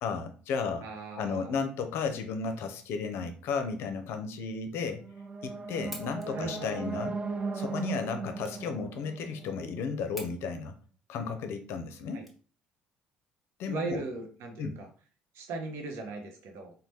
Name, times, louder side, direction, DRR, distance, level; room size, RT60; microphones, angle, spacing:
voice 1, 0.0-0.9 1.2-5.0 5.4-7.2 7.5-10.8 11.1-12.3 13.6-14.0 14.6-14.8, left 5 dB, 55° left, 8 dB, 0.5 m, -34 dB
voice 2, 0.8-1.6 6.2-6.9 8.6-8.7 12.1-12.2 13.7-14.9 15.3-16.7, right 3 dB, 60° right, 4 dB, 0.8 m, -38 dB
sound 1, 4.9-10.0, right 4 dB, 25° right, 0.4 m, -37 dB
sound 2, 5.9-12.9, left 1 dB, ahead, 1.0 m, -50 dB
4.0 x 2.1 x 3.3 m, 0.40 s
figure-of-eight pair, 50°, 5 cm